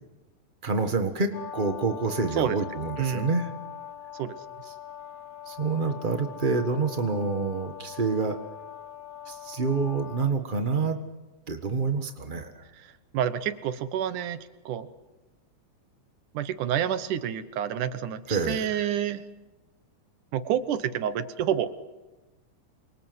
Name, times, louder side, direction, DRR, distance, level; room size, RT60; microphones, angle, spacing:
voice 1, 0.6-3.5 4.7-4.8 5.5-8.4 9.3-11.0 11.5-12.6 18.3-18.9, right 4 dB, 50° right, 6 dB, 0.6 m, -27 dB
Brass instrument, 1.3-10.3, left 10 dB, 70° left, 3.1 m, -42 dB
voice 2, 3.0-3.3 4.2-4.4 12.8-12.9 13.1-14.4 14.7-14.9 16.3-19.3 20.3-21.7, right 9 dB, 85° right, 13 dB, 2.7 m, -28 dB
28.0 x 24.5 x 7.9 m, 1.1 s
omnidirectional pair, 3.5 m